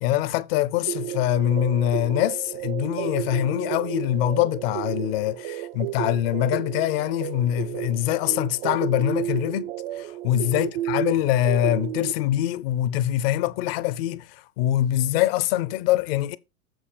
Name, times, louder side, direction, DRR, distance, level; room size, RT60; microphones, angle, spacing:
voice 1, 0.0-9.7 10.2-14.2 14.6-16.4, left 13 dB, 45° left, 0.7 m, -24 dB
sound 1, 0.9-12.1, right 14 dB, 40° right, 0.4 m, -32 dB
7.9 x 4.1 x 6.7 m
figure-of-eight pair, 90°, 43 cm